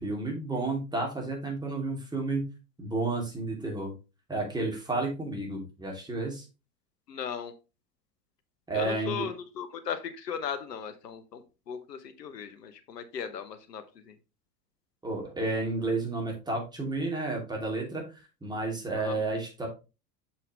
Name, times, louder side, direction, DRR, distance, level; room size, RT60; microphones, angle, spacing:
voice 1, 0.0-2.5 2.8-3.9 4.3-6.4 8.7-9.3 15.0-19.7, right 2 dB, 10° right, -1 dB, 2.8 m, -31 dB
voice 2, 7.1-7.5 8.7-14.1 19.0-19.2, left 7 dB, 85° left, 10 dB, 1.0 m, -37 dB
6.2 x 5.7 x 3.1 m, 0.29 s
hypercardioid pair, 85°, 47 cm